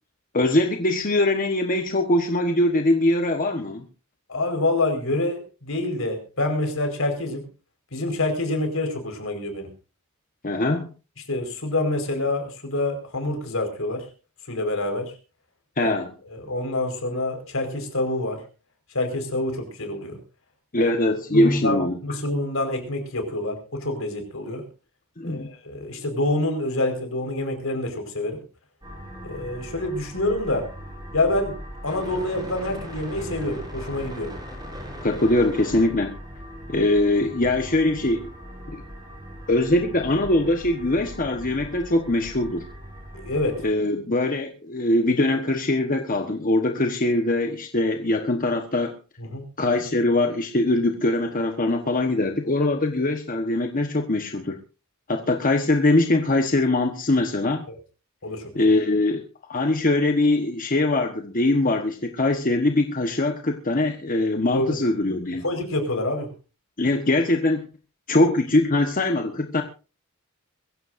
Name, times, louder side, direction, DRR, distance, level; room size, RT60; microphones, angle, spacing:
voice 1, 0.3-3.9 10.4-10.9 15.8-16.1 20.7-22.0 25.2-25.5 35.0-36.2 36.7-38.3 38.7-38.8 39.5-42.6 43.6-49.0 49.6-54.6 55.1-57.6 58.5-59.2 59.5-65.4 66.8-67.7 68.1-69.6, left 2 dB, 40° left, 1.3 m, -22 dB
voice 2, 4.3-7.5 7.9-9.7 11.3-14.1 14.5-15.1 15.8-15.9 16.3-18.4 18.9-20.2 20.7-20.9 21.3-24.6 25.2-28.4 29.2-30.7 31.1-31.6 31.8-34.3 43.1-43.6 49.2-49.4 57.7-57.8 58.2-58.4 64.5-64.8 65.4-66.3, left 2 dB, 75° left, 4.9 m, -27 dB
sound 1, 28.8-43.7, equal, 20° right, 7.1 m, -39 dB
22.5 x 15.5 x 2.6 m
head